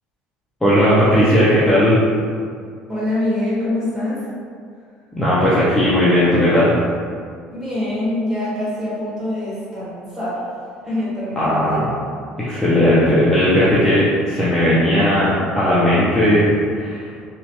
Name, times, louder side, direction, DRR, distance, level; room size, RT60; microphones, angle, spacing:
voice 1, 0.6-2.0 5.2-6.7 11.4-11.9 12.4-16.5 16.7-17.1, equal, 5° left, -10 dB, 0.4 m, -16 dB
voice 2, 2.9-4.3 7.5-10.6 10.8-11.8, left 1 dB, 15° right, -9 dB, 1.0 m, -24 dB
2.9 x 2.1 x 2.9 m, 2.1 s
cardioid pair, 150°, 3 cm